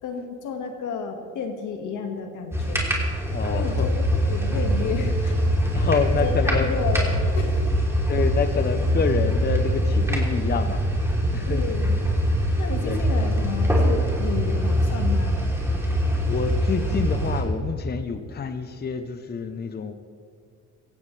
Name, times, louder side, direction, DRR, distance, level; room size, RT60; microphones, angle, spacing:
voice 1, 0.0-2.9 3.5-5.4 5.7-5.9 6.2-7.1 7.4-7.7 11.5-12.0 12.6-15.4, left 5 dB, 80° left, 4 dB, 1.9 m, -32 dB
sound 1, 2.5-17.4, equal, 10° right, 3.3 m, -23 dB
voice 2, 3.3-3.9 5.7-6.7 8.1-10.8 11.3-11.6 12.8-13.0 16.3-19.9, left 5 dB, 35° left, 9 dB, 0.8 m, -27 dB
16.5 x 16.0 x 3.3 m, 2.1 s
cardioid pair, 90°, 30 cm